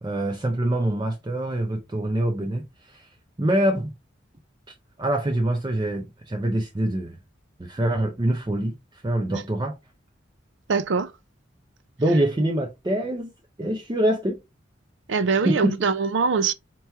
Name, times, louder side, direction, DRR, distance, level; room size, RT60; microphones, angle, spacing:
voice 1, 0.0-3.9 5.0-7.2 7.6-9.8 12.0-13.3 13.6-14.4 15.4-15.8, right 1 dB, 20° right, 0.5 m, -25 dB
voice 2, 10.7-11.1 15.1-16.5, right 5 dB, 70° right, 0.5 m, -23 dB
4.5 x 3.0 x 3.3 m
head